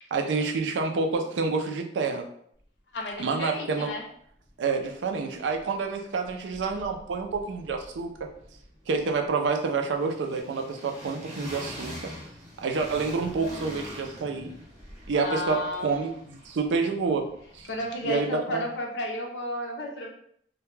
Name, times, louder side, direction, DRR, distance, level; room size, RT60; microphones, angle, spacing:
voice 1, 0.1-2.3 3.2-3.9 4.6-8.1 8.9-12.1 12.6-14.5 15.1-17.3 17.5-17.7 18.0-18.6, right 4 dB, 90° right, 4 dB, 0.4 m, -28 dB
voice 2, 2.9-4.0 15.2-16.0 17.7-20.1, left 1 dB, 75° left, 1 dB, 0.5 m, -32 dB
sound 1, 4.4-4.5 4.8-6.0 6.2-18.4, equal, 40° right, 0.6 m, -45 dB
2.2 x 2.1 x 3.1 m, 0.67 s
head